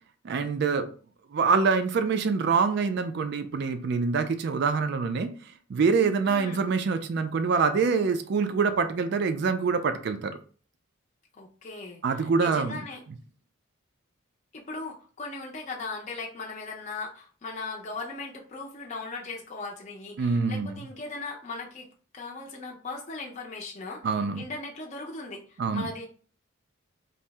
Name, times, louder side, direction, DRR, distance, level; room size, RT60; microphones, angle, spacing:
voice 1, 0.2-0.9 1.3-5.3 5.7-10.3 12.0-12.8 20.2-20.8 24.0-24.4 25.6-25.9, right 5 dB, 50° right, 8 dB, 0.3 m, -25 dB
voice 2, 6.3-6.7 11.3-13.0 14.5-21.9 22.1-26.1, left 3 dB, 35° left, -1 dB, 0.5 m, -38 dB
2.7 x 2.0 x 3.3 m, 0.41 s
head